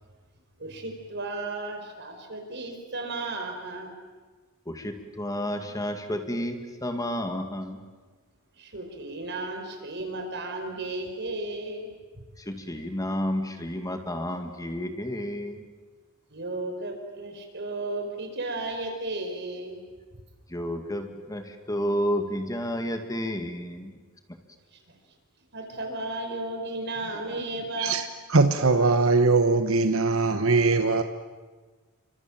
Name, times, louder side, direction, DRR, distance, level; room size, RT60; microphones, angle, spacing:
voice 1, 0.6-3.9 8.6-11.9 16.3-19.8 24.9-25.0 25.5-28.0, right 2 dB, 55° right, 4 dB, 5.2 m, -34 dB
voice 2, 4.7-7.8 12.4-15.6 20.5-24.0, equal, 15° left, 6 dB, 2.1 m, -31 dB
voice 3, 27.8-31.0, right 3 dB, 75° right, 8 dB, 1.2 m, -21 dB
29.5 x 25.0 x 7.5 m, 1.4 s
head